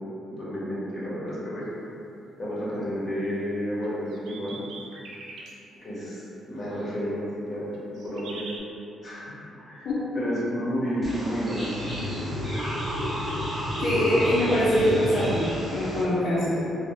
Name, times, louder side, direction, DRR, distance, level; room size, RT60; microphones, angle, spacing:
voice 1, 0.3-1.6 2.4-4.6 5.8-7.7 8.0-8.5 9.0-9.2 9.7-9.9 10.1-12.1, equal, 40° left, -8 dB, 1.1 m, -31 dB
sound 1, 3.8-5.5 7.7-8.6, right 3 dB, 80° right, 0.4 m, -42 dB
sound 2, 11.0-16.0, equal, 20° right, 1.0 m, -31 dB
voice 2, 13.8-16.6, equal, 70° left, -11 dB, 0.7 m, -23 dB
3.2 x 2.3 x 2.7 m, 2.8 s
cardioid pair, 90°, 0 cm